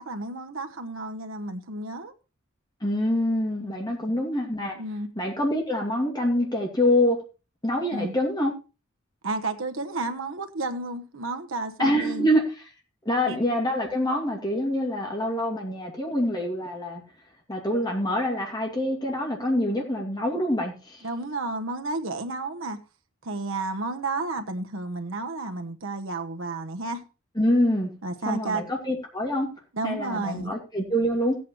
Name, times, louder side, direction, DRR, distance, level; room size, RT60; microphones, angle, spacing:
voice 1, 0.0-2.1 4.7-5.1 7.9-8.1 9.2-12.3 13.3-13.4 21.0-22.8 23.2-27.0 28.0-28.6 29.7-30.5, right 2 dB, 75° right, 1.1 m, -31 dB
voice 2, 2.8-4.8 5.2-7.2 7.6-8.5 11.8-12.4 13.0-17.0 17.5-21.0 27.4-27.9 28.3-29.5 29.8-31.4, left 1 dB, 20° left, 2.5 m, -25 dB
16.0 x 8.4 x 3.1 m
head